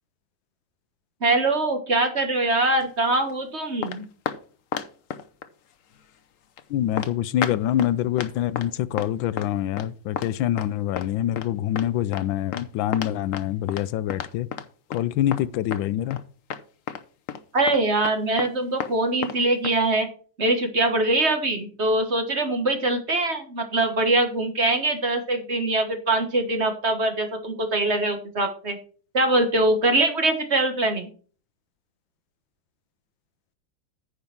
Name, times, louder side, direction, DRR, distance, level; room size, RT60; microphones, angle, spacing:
voice 1, 1.2-4.1 17.5-20.1 20.4-28.8 29.1-31.1, right 2 dB, 35° right, 1.5 m, -23 dB
sound 1, 2.8-3.3 3.8-4.4 4.7-5.5 5.9-6.1 6.6-6.7 7.0-7.1 7.4-7.9 8.2-8.7 9.0-9.1 9.4-9.9 10.2-10.3 10.6-10.7 11.0-11.1 11.4-11.5 11.8-11.9 12.1-12.3 12.5-12.7 12.9-14.7 14.9-15.0 15.3-15.8 16.1-16.2 16.5-16.6 16.9-17.0 17.3-17.4 17.7-18.5 18.8-19.0 19.2-19.4 19.6-19.7, left 8 dB, 55° left, 0.9 m, -32 dB
voice 2, 6.7-14.5 14.9-16.2, left 12 dB, 80° left, 1.3 m, -25 dB
9.6 x 5.3 x 5.9 m
omnidirectional pair, 2.1 m